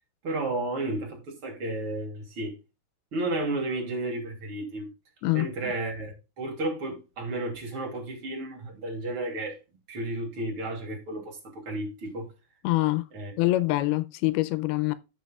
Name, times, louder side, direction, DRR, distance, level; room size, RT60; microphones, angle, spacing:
voice 1, 0.2-2.5 3.1-4.9 5.3-9.6 9.9-12.3 13.1-13.3, right 2 dB, 35° right, 3.2 m, -32 dB
voice 2, 5.2-5.7 12.6-13.1 13.4-14.9, left 18 dB, 85° left, 2.4 m, -25 dB
15.0 x 6.1 x 2.3 m
omnidirectional pair, 4.4 m